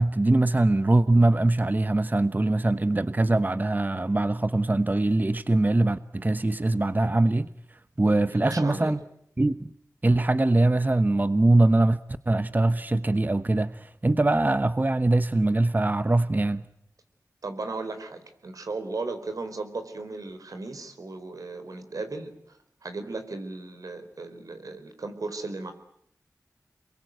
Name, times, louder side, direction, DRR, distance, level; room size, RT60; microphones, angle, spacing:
voice 1, 0.0-7.5 8.0-9.0 9.4-9.7 10.0-12.0 12.3-16.6, right 2 dB, 30° right, 1.0 m, -22 dB
voice 2, 8.0-8.9 17.4-22.6 22.8-25.7, right 3 dB, 85° right, 4.4 m, -36 dB
27.0 x 22.5 x 9.3 m
wide cardioid pair, 50°, 6 cm